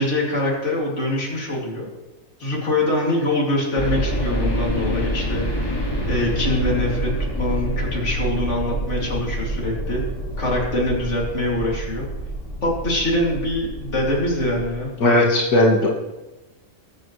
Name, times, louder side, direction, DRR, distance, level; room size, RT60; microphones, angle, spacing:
voice 1, 0.0-1.9 2.4-5.8 6.1-10.0 10.4-12.1 12.6-14.9, left 1 dB, 55° left, -3 dB, 3.1 m, -24 dB
sound 1, 3.8-14.7, right 1 dB, 15° left, 1.9 m, -27 dB
voice 2, 15.0-15.9, left 1 dB, 90° left, -3 dB, 2.2 m, -16 dB
20.0 x 8.1 x 3.2 m, 1.1 s
omnidirectional pair, 1.5 m